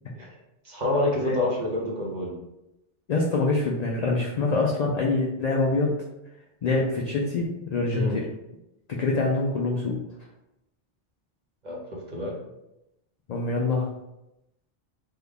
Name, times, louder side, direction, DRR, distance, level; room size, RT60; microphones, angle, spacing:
voice 1, 0.6-2.3 7.9-8.2 11.6-12.3, left 1 dB, 45° right, -3 dB, 0.8 m, -27 dB
voice 2, 3.1-6.0 6.6-8.3 8.9-10.0 13.3-13.9, left 3 dB, 70° left, -2 dB, 0.3 m, -25 dB
3.4 x 2.2 x 3.6 m, 0.89 s
omnidirectional pair, 1.2 m